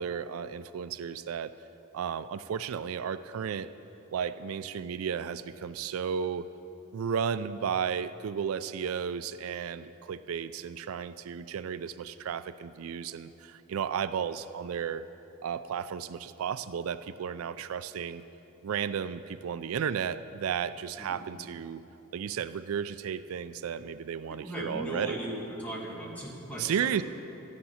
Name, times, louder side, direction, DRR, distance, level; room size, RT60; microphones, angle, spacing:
voice 1, 0.0-1.5 1.9-3.7 4.1-6.5 6.9-15.0 15.4-18.2 18.6-21.8 22.1-25.2 26.6-27.0, right 7 dB, 85° right, 14 dB, 0.4 m, -33 dB
voice 2, 24.4-26.9, equal, 5° left, -4 dB, 1.8 m, -38 dB
13.0 x 9.7 x 5.6 m, 3.0 s
head